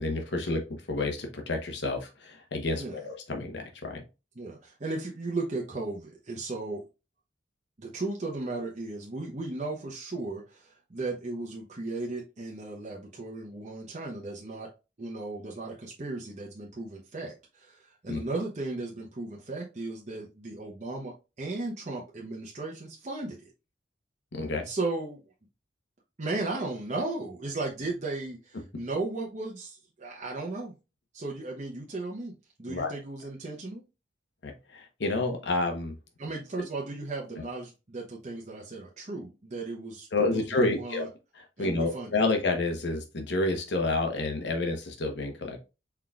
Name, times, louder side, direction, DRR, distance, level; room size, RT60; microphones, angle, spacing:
voice 1, 0.0-4.0 18.1-18.2 24.3-24.7 32.7-32.9 34.4-35.9 40.1-41.1 41.3-45.6, left 2 dB, 70° left, 1.0 m, -29 dB
voice 2, 4.4-6.8 7.8-14.7 15.0-23.5 24.6-25.2 26.2-30.7 31.1-33.8 36.2-41.1 41.6-42.1, right 2 dB, 40° right, 0.8 m, -36 dB
4.5 x 3.9 x 2.3 m
head